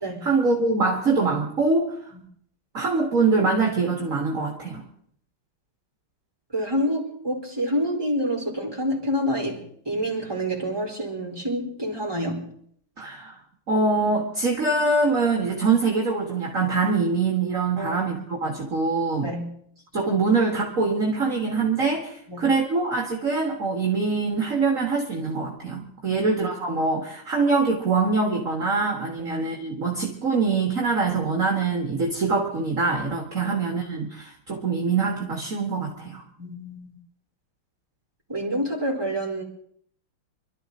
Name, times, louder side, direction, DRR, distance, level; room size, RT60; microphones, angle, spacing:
voice 1, 0.2-2.0 2.7-4.8 13.0-13.4 13.7-19.3 19.9-36.2, right 4 dB, 35° right, 0 dB, 2.2 m, -24 dB
voice 2, 6.5-12.5 17.8-18.0 19.2-19.5 22.3-22.5 26.1-26.2 29.2-29.3 33.4-33.6 36.4-36.9 38.3-39.4, equal, 10° right, -1 dB, 3.8 m, -28 dB
26.0 x 13.0 x 3.8 m, 0.63 s
omnidirectional pair, 2.4 m